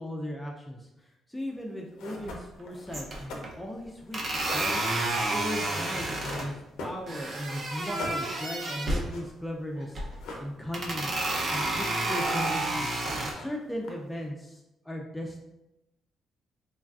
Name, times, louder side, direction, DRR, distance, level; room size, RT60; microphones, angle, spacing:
voice 1, 0.0-13.0 13.3-15.4, equal, 5° left, -1 dB, 0.3 m, -37 dB
sound 1, 1.6-1.7 2.0-7.4 7.7-9.3 9.6-9.7 9.9-10.8 11.1-11.7 12.0-12.7 13.0-14.2, left 2 dB, 85° left, 0.5 m, -43 dB
sound 2, 2.2-2.6 2.9-3.5 4.1-6.5 7.1-9.1 9.8-10.2 10.7-13.3, right 2 dB, 45° right, 0.5 m, -30 dB
3.1 x 2.3 x 2.3 m, 0.93 s
cardioid pair, 90°, 0 cm